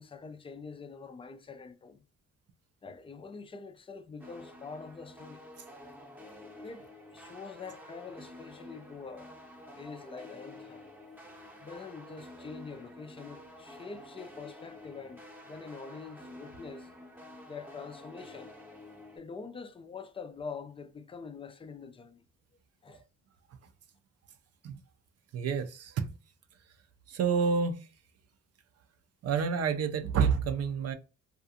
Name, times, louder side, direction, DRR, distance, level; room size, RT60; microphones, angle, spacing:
voice 1, 0.0-2.0 2.8-5.5 6.6-9.3 9.7-10.9 11.6-16.9 17.5-18.5 19.2-22.2 22.8-23.0, left 5 dB, 20° left, 0.3 m, -45 dB
sound 1, 4.2-19.2, left 1 dB, 5° right, 0.7 m, -50 dB
voice 2, 25.3-26.1 27.1-27.8 29.2-30.9, right 6 dB, 55° right, 0.5 m, -28 dB
2.5 x 2.3 x 2.6 m
cardioid pair, 90°, 30 cm